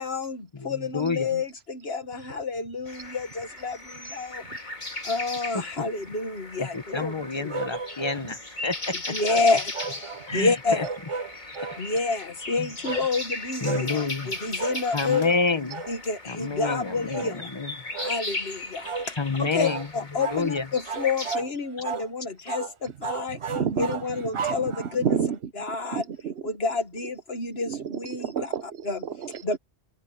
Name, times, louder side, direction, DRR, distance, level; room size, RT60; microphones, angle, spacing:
voice 1, 0.0-4.7 5.0-7.5 8.9-9.7 10.3-10.9 11.8-15.6 15.9-17.6 18.0-25.2 25.6-26.0 26.4-28.5 28.8-29.0 29.4-29.6, left 4 dB, 70° left, 1.9 m, -29 dB
voice 2, 0.6-1.3 6.6-8.4 8.6-9.1 10.3-10.5 13.6-14.3 14.9-15.8 16.3-17.7 19.2-19.9 20.2-20.6, left 4 dB, 25° left, 1.0 m, -28 dB
sound 1, 2.9-21.4, left 2 dB, 45° left, 2.8 m, -37 dB
sound 2, 7.5-8.3 9.3-10.3 10.8-11.8 12.8-13.1 13.6-13.9 14.6-14.8 15.1-15.4 15.7-16.0 16.6-16.8 17.1-17.4 17.9-18.2 18.8-19.1 19.6-19.9 20.2-20.5 20.9-21.5 21.8-22.1 22.5-22.7 23.0-25.1, right 5 dB, 40° right, 0.5 m, -33 dB
voice 3, 23.3-25.4 25.7-26.4 27.7-29.6, right 7 dB, 70° right, 1.1 m, -31 dB
omnidirectional pair, 1.1 m